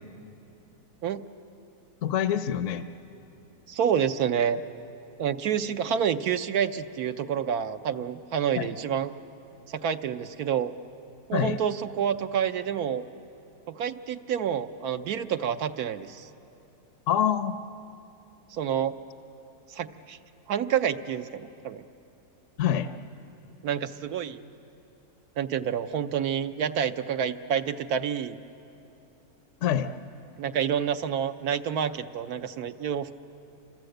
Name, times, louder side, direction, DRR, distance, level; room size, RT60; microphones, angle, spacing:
voice 1, 2.0-2.9 8.5-8.7 11.3-11.6 17.1-17.6 22.6-22.9 29.6-29.9, left 9 dB, 60° left, 10 dB, 1.0 m, -25 dB
voice 2, 3.7-4.6 5.2-9.1 9.7-10.7 11.3-13.0 13.7-16.3 18.5-18.9 19.7-20.2 20.5-21.8 23.6-24.4 25.4-28.4 30.4-33.2, right 8 dB, 75° right, 9 dB, 1.3 m, -28 dB
29.5 x 25.5 x 7.9 m, 2.8 s
omnidirectional pair, 1.6 m